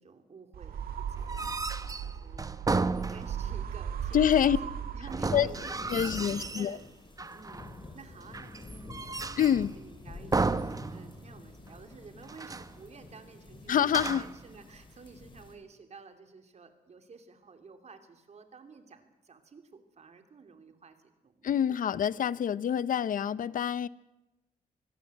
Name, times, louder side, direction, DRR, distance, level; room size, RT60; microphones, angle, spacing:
voice 1, 0.0-6.9 7.2-21.8 22.3-22.4, right 4 dB, 45° right, 3.1 m, -51 dB
sound 1, 0.5-5.9, right 8 dB, 80° right, 2.2 m, -37 dB
sound 2, 1.2-3.6 5.1-6.8 7.2-7.8 8.3-9.7 10.3-11.4 11.7-11.8 12.2-12.8 13.8-14.5, right 3 dB, 25° right, 0.9 m, -33 dB
voice 2, 4.1-4.6 5.3-5.5 5.9-6.8 9.4-9.7 13.7-14.2 21.4-23.9, left 9 dB, 65° left, 0.7 m, -26 dB
sound 3, 5.4-15.5, left 3 dB, 35° left, 4.0 m, -48 dB
25.0 x 16.0 x 8.0 m
cardioid pair, 85°, 15 cm